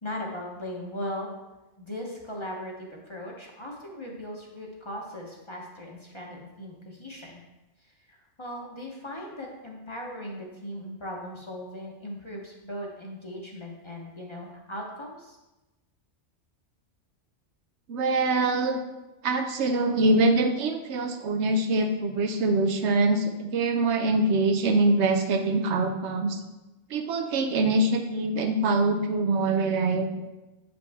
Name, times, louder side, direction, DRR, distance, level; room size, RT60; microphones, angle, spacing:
voice 1, 0.0-1.3 1.8-7.4 8.1-15.4, left 1 dB, 25° left, -2 dB, 0.9 m, -38 dB
voice 2, 17.9-18.8 19.2-26.4 26.9-30.2, right 2 dB, 70° right, 6 dB, 0.9 m, -24 dB
7.1 x 5.2 x 3.4 m, 1.0 s
omnidirectional pair, 1.2 m